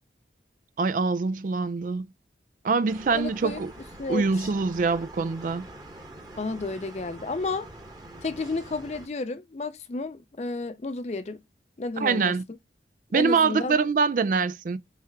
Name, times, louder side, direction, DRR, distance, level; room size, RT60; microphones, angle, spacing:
voice 1, 0.8-2.0 2.6-3.7 4.1-5.6 12.0-12.4 13.1-14.8, right 4 dB, 45° right, 0.4 m, -24 dB
sound 1, 2.9-9.1, right 1 dB, 20° right, 1.1 m, -45 dB
voice 2, 3.1-3.6 4.0-4.5 6.4-7.7 8.2-11.4 11.8-12.3 13.1-13.8, left 3 dB, 40° left, 0.5 m, -32 dB
4.4 x 3.4 x 3.5 m
head